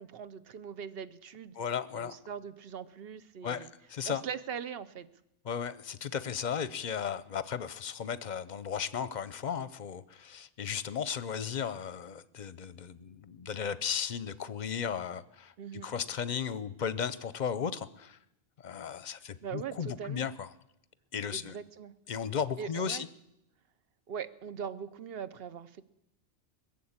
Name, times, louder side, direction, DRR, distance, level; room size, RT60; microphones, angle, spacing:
voice 1, 0.0-1.6 2.0-3.7 4.1-5.1 15.6-15.9 19.4-20.3 21.3-21.9 22.6-23.1 24.1-25.8, right 7 dB, 65° right, 13 dB, 1.0 m, -41 dB
voice 2, 1.6-2.2 3.4-4.2 5.4-15.5 15.8-18.2 18.6-20.5 21.1-21.6 22.1-23.1, left 7 dB, 50° left, 15 dB, 0.7 m, -35 dB
21.0 x 7.4 x 8.7 m, 0.84 s
omnidirectional pair, 1.1 m